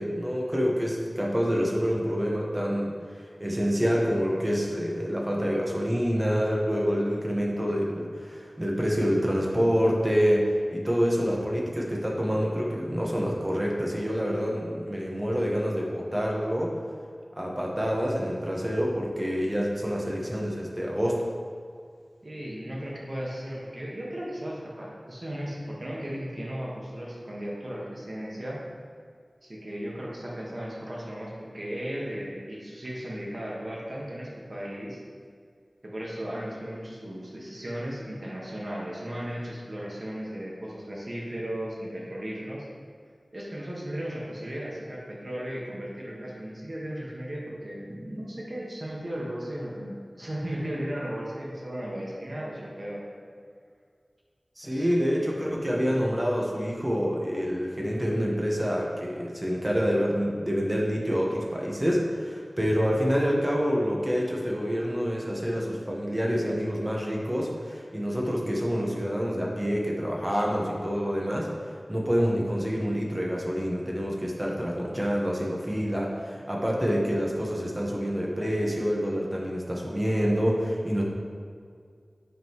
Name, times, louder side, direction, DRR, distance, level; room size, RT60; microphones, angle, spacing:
voice 1, 0.0-16.7 17.3-21.2 54.6-81.0, equal, 20° right, -2 dB, 1.3 m, -27 dB
voice 2, 22.2-28.6 29.4-35.0 35.8-42.7 43.3-53.1 54.6-54.9 55.2-55.6, equal, 50° right, -4 dB, 1.6 m, -36 dB
8.8 x 5.2 x 3.1 m, 2.1 s
wide cardioid pair, 50°, 0 cm